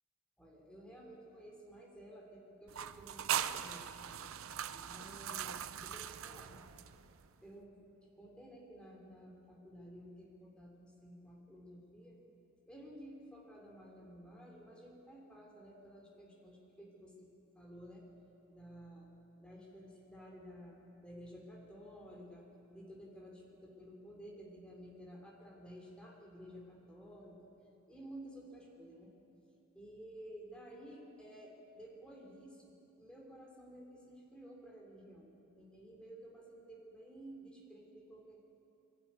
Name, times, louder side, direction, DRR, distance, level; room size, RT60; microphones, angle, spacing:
voice 1, 0.4-4.2 4.7-6.6 7.4-12.2 12.7-17.3 17.5-18.1 18.5-19.1 19.4-27.4 27.9-29.1 29.7-35.3 35.6-38.4, equal, 5° left, -2 dB, 3.3 m, -53 dB
sound 1, 2.7-7.3, right 9 dB, 65° right, 0.5 m, -40 dB
22.0 x 12.0 x 9.7 m, 2.9 s
head